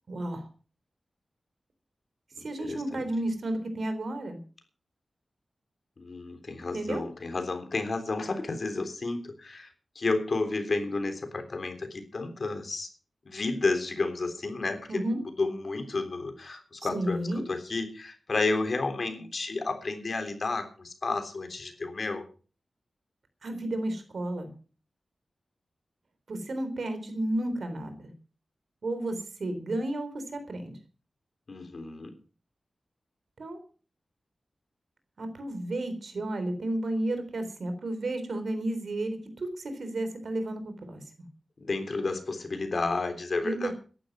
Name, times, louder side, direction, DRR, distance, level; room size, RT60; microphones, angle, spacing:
voice 1, 0.1-0.5 2.4-4.4 6.7-7.0 14.9-15.2 16.8-17.4 23.4-24.5 26.3-28.1 28.8-30.7 33.4-33.6 35.2-41.3 43.4-43.7, right 1 dB, 65° right, 8 dB, 4.0 m, -32 dB
voice 2, 2.4-3.0 6.0-9.7 10.0-12.9 13.3-15.0 15.4-22.3 31.5-32.1 41.6-43.7, left 3 dB, 50° left, 7 dB, 3.5 m, -31 dB
14.0 x 11.5 x 6.2 m, 0.38 s
wide cardioid pair, 105°, 0 cm